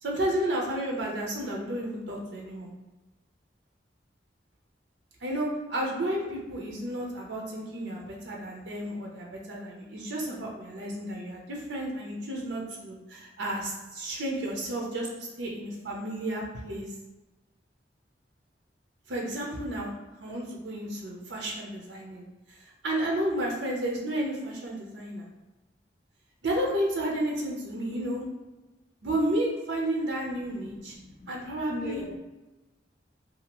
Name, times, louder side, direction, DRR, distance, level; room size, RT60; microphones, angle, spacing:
voice 1, 0.0-2.7 5.2-16.8 19.1-19.9 20.2-22.6 22.8-25.2 26.4-28.2 29.0-31.0 31.3-32.1, right 1 dB, 85° right, -1 dB, 0.6 m, -32 dB
voice 2, 30.2-32.2, left 2 dB, 40° left, 3 dB, 0.4 m, -42 dB
2.7 x 2.4 x 2.9 m, 1.1 s
head